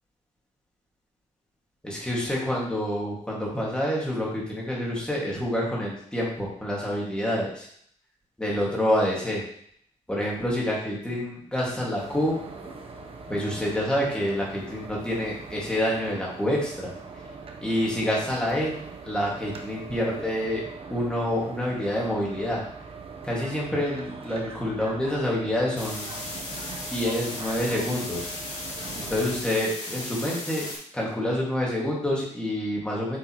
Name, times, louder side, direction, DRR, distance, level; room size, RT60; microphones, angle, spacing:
voice 1, 1.8-7.7 8.4-9.4 10.1-12.4 13.3-17.0 17.6-20.6 20.9-22.6 23.2-26.3 26.9-28.3 29.1-30.7 30.9-33.2, left 1 dB, 5° left, -4 dB, 2.0 m, -27 dB
sound 1, 12.0-29.4, right 4 dB, 50° right, 0.8 m, -41 dB
sound 2, 25.8-30.8, left 2 dB, 70° left, 2.9 m, -36 dB
7.9 x 5.4 x 3.1 m, 0.65 s
wide cardioid pair, 175°, 13 cm